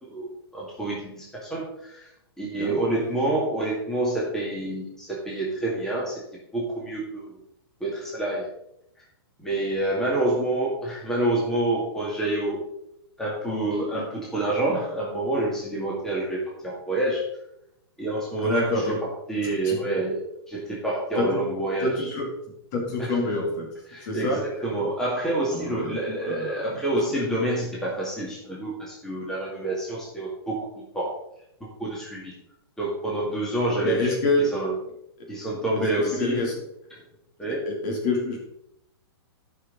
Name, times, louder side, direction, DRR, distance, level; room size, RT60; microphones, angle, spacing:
voice 1, 0.0-2.1 2.4-6.2 6.5-7.4 7.8-8.5 9.0-9.1 9.4-12.6 13.2-17.2 18.0-22.2 23.0-23.2 23.9-30.7 30.9-31.1 31.6-32.3 32.8-34.8 35.3-36.5 37.4-37.6, right 2 dB, 5° left, -5 dB, 2.0 m, -28 dB
voice 2, 18.4-19.0 19.6-19.8 21.2-21.3 21.8-22.3 22.7-23.7 24.0-24.4 25.5-26.0 26.2-26.8 33.8-34.5 35.7-35.8 36.1-36.5 37.7-38.4, left 2 dB, 45° left, 0 dB, 2.9 m, -26 dB
11.5 x 5.7 x 4.0 m, 0.79 s
hypercardioid pair, 150°, 13 cm